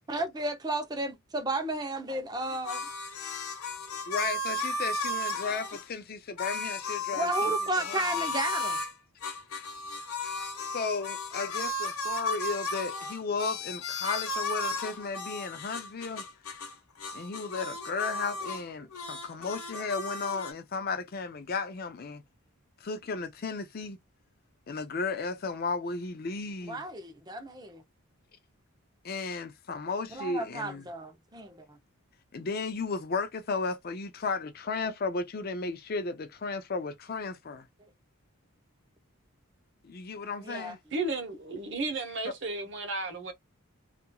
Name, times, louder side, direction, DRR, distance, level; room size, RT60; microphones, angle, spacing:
voice 1, 0.1-2.9 7.1-8.8 26.7-27.8 30.1-31.8 40.4-40.8, right 2 dB, 20° right, 0.6 m, -33 dB
sound 1, 2.4-5.8 6.4-8.9 9.2-16.7 17.0-18.6 18.9-20.5, left 2 dB, 85° left, 0.8 m, -34 dB
voice 2, 4.1-7.5 7.9-8.3 10.7-16.2 17.1-22.2 22.8-24.0 24.7-26.8 29.0-30.8 32.3-37.7 39.8-40.8 42.2-42.3, left 4 dB, 45° left, 0.4 m, -34 dB
voice 3, 40.9-43.3, right 2 dB, 55° right, 0.9 m, -33 dB
2.8 x 2.5 x 2.2 m
head